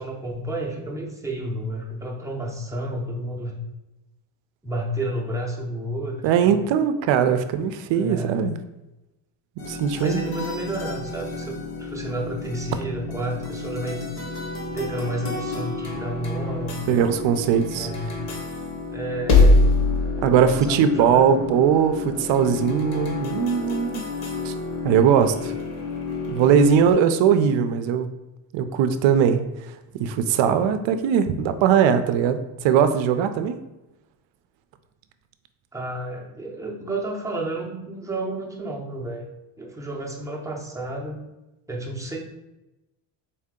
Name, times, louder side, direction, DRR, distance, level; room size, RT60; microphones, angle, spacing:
voice 1, 0.0-3.6 4.6-6.6 7.9-8.5 10.0-14.0 14.7-16.8 17.7-18.2 18.9-19.6 20.4-21.5 35.7-39.3 39.6-41.2 41.7-42.2, right 1 dB, 5° right, -2 dB, 0.6 m, -31 dB
voice 2, 6.2-8.6 9.6-10.5 16.9-17.9 20.2-24.0 24.4-24.5 24.8-25.5 26.3-28.1 28.5-29.4 30.0-33.6, right 8 dB, 65° right, 10 dB, 0.5 m, -20 dB
sound 1, 9.6-26.9, left 3 dB, 55° left, 1.2 m, -26 dB
4.3 x 2.7 x 3.6 m, 0.98 s
cardioid pair, 115°, 49 cm